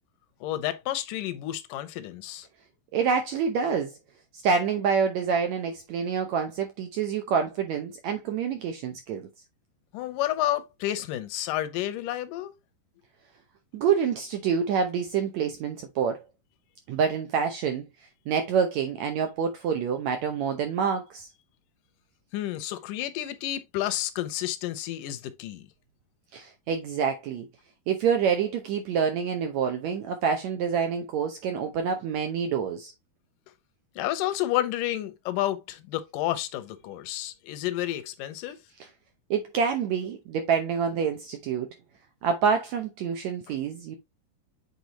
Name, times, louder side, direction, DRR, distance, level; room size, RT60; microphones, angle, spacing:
voice 1, 0.4-2.5 9.9-12.5 22.3-25.7 34.0-38.6, left 14 dB, 75° left, 2.1 m, -30 dB
voice 2, 2.9-3.9 4.4-9.3 13.7-16.2 16.9-17.8 18.3-21.3 26.3-27.5 27.9-32.9 39.3-41.7 42.2-44.0, right 6 dB, 85° right, 1.5 m, -27 dB
8.3 x 4.2 x 2.9 m
omnidirectional pair, 4.3 m